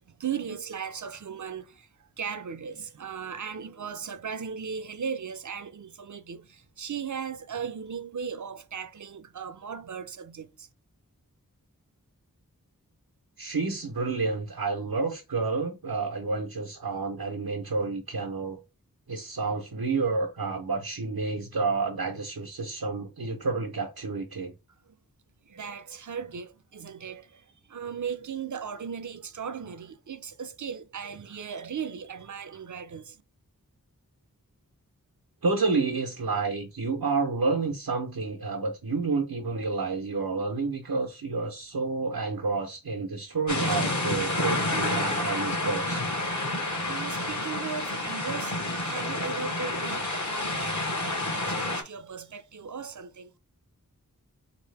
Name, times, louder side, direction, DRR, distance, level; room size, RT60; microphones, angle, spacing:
voice 1, 0.1-10.7 24.9-25.0 25.5-33.2 46.6-53.3, right 6 dB, 55° right, 0.5 m, -37 dB
voice 2, 13.4-18.6 19.1-24.5 35.4-46.1, right 4 dB, 85° right, 0.8 m, -29 dB
sound 1, 43.5-51.8, left 2 dB, 55° left, 0.9 m, -29 dB
4.1 x 2.9 x 3.3 m
wide cardioid pair, 45°, 35 cm